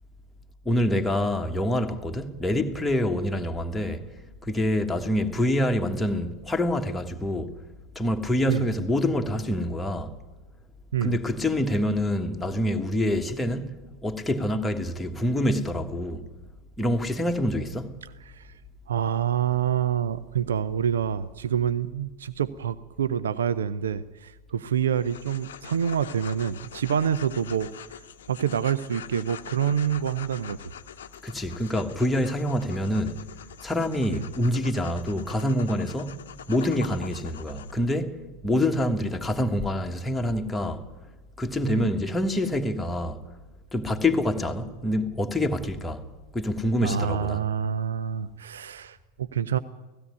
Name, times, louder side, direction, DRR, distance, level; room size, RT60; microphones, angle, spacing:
voice 1, 0.6-4.0 4.4-7.5 7.9-10.1 11.0-16.3 16.8-18.0 31.2-33.2 33.6-36.2 36.5-40.8 41.4-43.2 43.7-46.0 46.3-47.4, left 1 dB, 5° left, 1.5 m, -26 dB
voice 2, 18.9-27.7 28.3-30.6 34.1-34.2 41.6-41.9 46.8-49.6, right 8 dB, 65° right, 0.6 m, -27 dB
sound 1, 24.9-37.7, left 9 dB, 60° left, 0.8 m, -44 dB
17.0 x 16.0 x 9.6 m
figure-of-eight pair, 90°, 0 cm